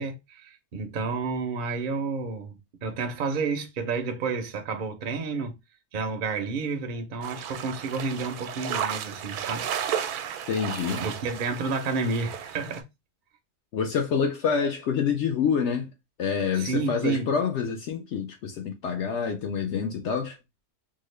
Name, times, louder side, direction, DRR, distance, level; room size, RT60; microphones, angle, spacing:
voice 1, 0.0-5.6 5.9-9.7 11.0-12.9 16.5-17.3, right 4 dB, 55° right, 0.6 m, -30 dB
sound 1, 7.2-12.8, right 9 dB, 85° right, 1.1 m, -33 dB
voice 2, 10.5-11.0 13.7-15.9 16.2-20.4, left 6 dB, 65° left, 0.7 m, -27 dB
3.6 x 2.1 x 3.1 m
omnidirectional pair, 1.6 m